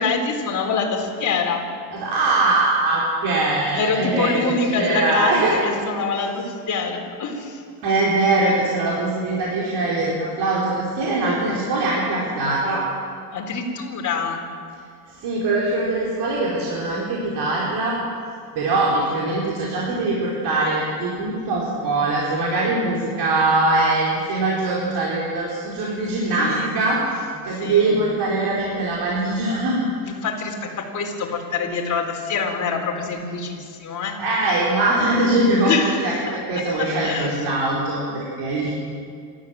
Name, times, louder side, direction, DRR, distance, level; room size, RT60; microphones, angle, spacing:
voice 1, 0.0-1.6 3.8-7.6 13.3-14.4 26.4-26.8 27.5-28.0 30.1-34.2 35.6-36.4 36.8-37.3, left 4 dB, 40° left, 2 dB, 4.1 m, -25 dB
voice 2, 2.0-5.5 7.8-12.8 15.2-18.0 18.5-29.8 34.2-35.7 36.0-38.7, right 2 dB, 55° right, -5 dB, 4.7 m, -22 dB
28.0 x 14.0 x 7.7 m, 2.2 s
cardioid pair, 120°, 47 cm